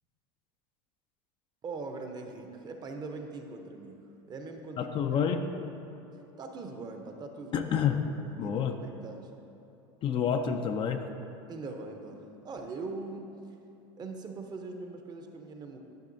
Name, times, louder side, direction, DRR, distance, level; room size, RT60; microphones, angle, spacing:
voice 1, 1.6-5.0 6.4-7.8 8.2-9.3 11.5-13.6 14.0-15.8, right 3 dB, 30° right, 4 dB, 0.7 m, -41 dB
voice 2, 4.8-5.4 7.5-8.0 8.4-8.8 10.0-11.0, left 7 dB, 40° left, 6 dB, 0.4 m, -28 dB
10.5 x 5.5 x 2.6 m, 2.9 s
supercardioid pair, 105°, 14 cm